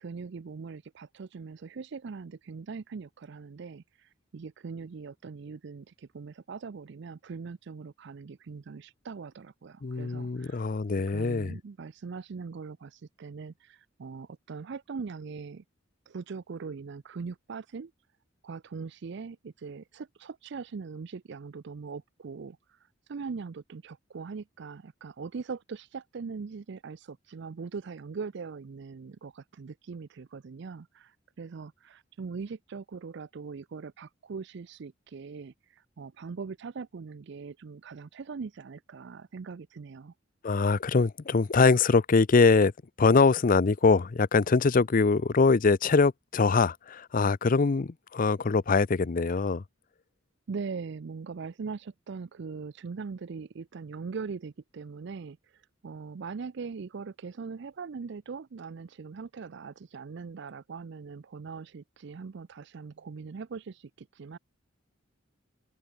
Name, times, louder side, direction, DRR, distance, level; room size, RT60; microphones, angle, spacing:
voice 1, 0.0-10.6 11.1-15.6 16.1-17.9 18.4-40.1 50.5-64.4, right 5 dB, 60° right, 0.4 m, -41 dB
voice 2, 9.8-11.5 40.4-42.7 43.0-49.6, left 4 dB, 40° left, 0.5 m, -23 dB
open air
head